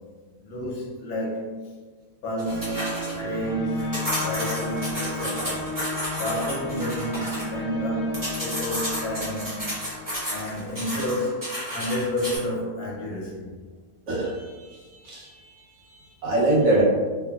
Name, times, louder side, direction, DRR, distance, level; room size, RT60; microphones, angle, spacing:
voice 1, 0.4-1.5 2.2-2.8 3.2-5.7 6.1-9.6 10.3-13.5, equal, 70° left, -4 dB, 1.0 m, -30 dB
sound 1, 2.4-3.1 3.8-7.4 8.1-12.4, equal, 20° right, 0.6 m, -31 dB
sound 2, 2.5-10.8, left 3 dB, 40° right, 1.0 m, -35 dB
voice 2, 14.1-15.5 15.9-16.8, right 2 dB, 70° right, -5 dB, 1.1 m, -24 dB
2.8 x 2.5 x 2.3 m, 1.4 s
omnidirectional pair, 1.8 m